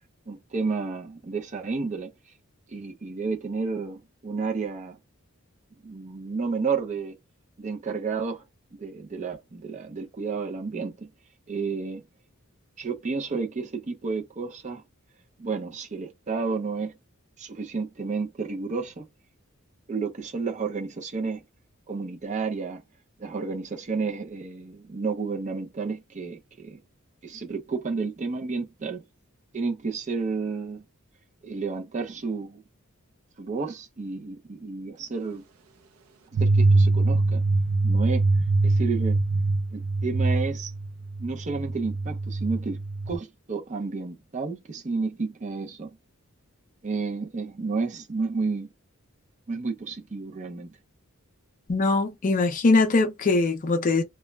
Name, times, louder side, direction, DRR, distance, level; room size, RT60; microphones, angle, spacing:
voice 1, 0.3-2.1 2.7-5.0 5.8-7.1 7.6-8.4 8.7-11.1 11.5-12.0 12.8-14.8 15.4-16.9 17.4-19.1 19.9-21.4 21.9-22.8 23.2-26.8 27.2-29.0 29.5-30.8 31.4-32.6 33.4-35.5 36.3-37.4 37.8-38.3 38.6-39.2 39.7-40.7 41.2-42.8 43.1-46.0 46.8-48.7 49.5-50.7, right 4 dB, 35° right, 0.5 m, -31 dB
sound 1, 36.3-43.2, right 2 dB, 85° right, 0.5 m, -23 dB
voice 2, 51.7-54.0, left 3 dB, 40° left, 0.5 m, -22 dB
2.2 x 2.0 x 3.2 m
head